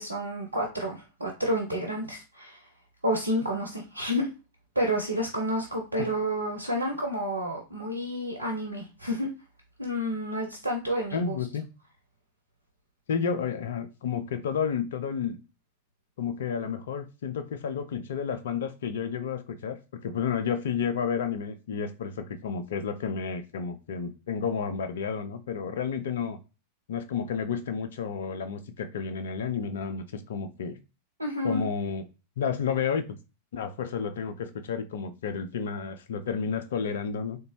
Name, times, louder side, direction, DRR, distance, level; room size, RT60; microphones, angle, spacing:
voice 1, 0.0-2.7 3.0-4.3 4.7-9.3 9.8-11.3 31.2-31.6, equal, 80° right, 0 dB, 0.6 m, -30 dB
voice 2, 11.1-11.7 13.1-15.4 16.2-26.4 26.9-30.8 31.4-32.1 32.4-33.2 33.5-37.4, left 6 dB, 60° left, 9 dB, 0.5 m, -31 dB
3.8 x 2.2 x 3.0 m, 0.31 s
figure-of-eight pair, 90°, 0 cm